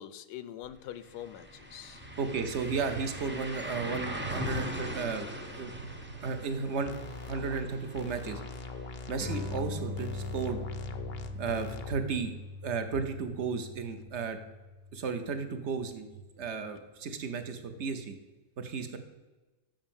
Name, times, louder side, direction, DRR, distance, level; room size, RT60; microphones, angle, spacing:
voice 1, 0.0-2.0, left 11 dB, 80° left, 13 dB, 1.1 m, -44 dB
sound 1, 0.6-0.7 1.1-10.8 11.2-11.3 14.1-14.2, equal, 10° right, 0.5 m, -41 dB
voice 2, 2.2-6.9 7.3-8.4 9.1-10.6 11.3-12.3 12.6-14.4 14.9-16.1 16.3-18.2 18.6-19.0, right 5 dB, 50° right, 9 dB, 1.0 m, -34 dB
sound 2, 6.9-7.6 8.0-9.7 10.0-11.9, left 4 dB, 55° left, 0.6 m, -42 dB
sound 3, 9.2-16.0, left 3 dB, 80° right, 2.3 m, -41 dB
7.5 x 6.3 x 7.1 m, 1.2 s
omnidirectional pair, 1.8 m